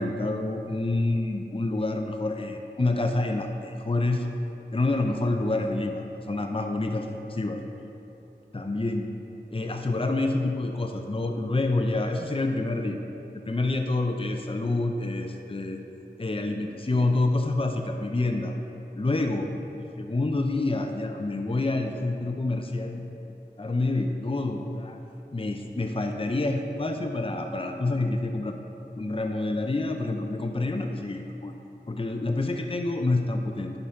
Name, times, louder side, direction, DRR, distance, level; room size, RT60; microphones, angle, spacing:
voice 1, 0.0-4.3 4.7-7.6 8.5-9.1 9.5-13.0 13.4-15.8 16.2-18.6 18.9-19.5 20.0-25.0 25.3-28.6 29.0-31.6 31.9-33.7, left 2 dB, 30° left, 4 dB, 0.6 m, -27 dB
11.0 x 4.0 x 5.7 m, 2.9 s
wide cardioid pair, 40°, 18 cm